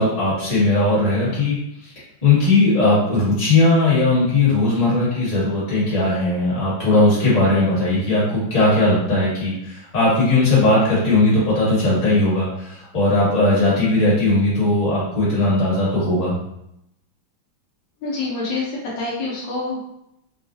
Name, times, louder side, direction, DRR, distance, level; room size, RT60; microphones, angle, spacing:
voice 1, 0.0-1.6 1.8-1.9 2.2-16.3, left 2 dB, 20° left, -8 dB, 1.3 m, -18 dB
voice 2, 18.0-19.8, left 3 dB, 70° left, -5 dB, 1.5 m, -26 dB
3.6 x 2.4 x 2.6 m, 0.79 s
omnidirectional pair, 2.2 m